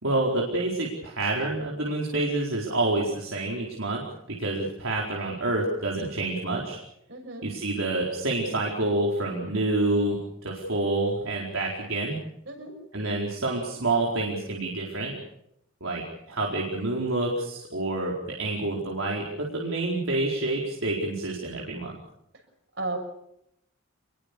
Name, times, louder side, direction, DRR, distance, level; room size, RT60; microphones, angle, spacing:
voice 1, 0.0-4.0 4.3-6.8 7.4-12.2 12.9-15.2 15.8-18.1 18.4-22.0, right 2 dB, 80° right, -2 dB, 4.6 m, -28 dB
voice 2, 7.1-7.5 12.5-12.7 22.8-23.0, right 2 dB, 60° right, 4 dB, 6.7 m, -33 dB
27.5 x 22.0 x 6.9 m, 0.79 s
head